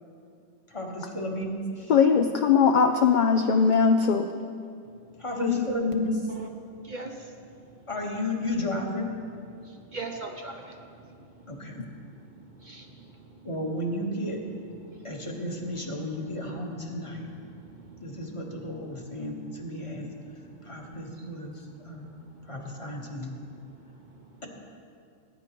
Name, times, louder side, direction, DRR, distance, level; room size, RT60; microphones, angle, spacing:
voice 1, 0.7-1.9 5.2-6.2 7.9-9.1 11.5-11.8 13.4-14.4 15.0-17.3 18.0-20.1 20.6-22.1 22.5-23.4, left 1 dB, 25° left, 0 dB, 1.2 m, -33 dB
voice 2, 1.9-4.3 5.4-5.6, left 6 dB, 60° left, 5 dB, 0.5 m, -20 dB
voice 3, 6.8-7.3 9.6-13.5 14.8-15.2 16.5-19.2 20.2-20.8 21.2-21.3 21.8-22.6 23.4-24.2, right 3 dB, 45° right, 2 dB, 0.8 m, -45 dB
18.5 x 9.8 x 3.0 m, 2.4 s
omnidirectional pair, 1.2 m